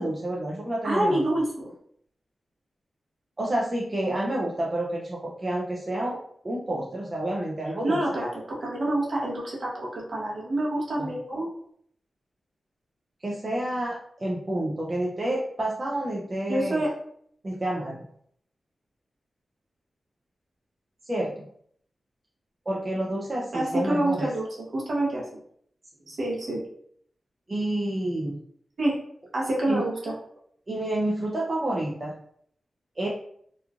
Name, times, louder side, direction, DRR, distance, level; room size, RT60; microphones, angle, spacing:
voice 1, 0.0-1.3 3.4-6.2 6.4-8.0 11.0-11.1 13.2-16.8 17.4-18.1 21.0-21.5 22.7-24.3 27.5-28.4 29.7-29.8 30.7-32.1 33.0-33.1, right 1 dB, 25° right, -4 dB, 0.4 m, -29 dB
voice 2, 0.8-1.7 7.8-11.5 16.5-16.9 23.5-25.4 26.1-26.6 28.8-29.0 29.3-30.1, right 1 dB, 55° right, -4 dB, 0.8 m, -27 dB
2.9 x 2.4 x 2.3 m, 0.65 s
wide cardioid pair, 165°, 0 cm